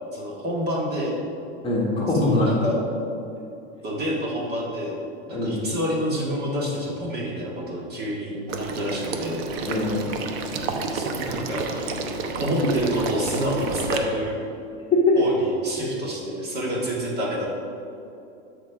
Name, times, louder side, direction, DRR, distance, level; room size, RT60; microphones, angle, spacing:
voice 1, 0.1-1.2 2.2-2.7 3.8-5.0 5.3-9.4 10.9-12.0 12.4-14.4 15.2-17.5, equal, 30° right, -3 dB, 1.9 m, -28 dB
voice 2, 1.6-2.5 5.3-5.6 9.6-10.1 15.1-15.2, left 2 dB, 15° left, -4 dB, 1.5 m, -22 dB
Water / Liquid, 8.5-14.0, right 4 dB, 65° right, 1.0 m, -30 dB
12.5 x 4.4 x 4.9 m, 2.7 s
supercardioid pair, 135°, 33 cm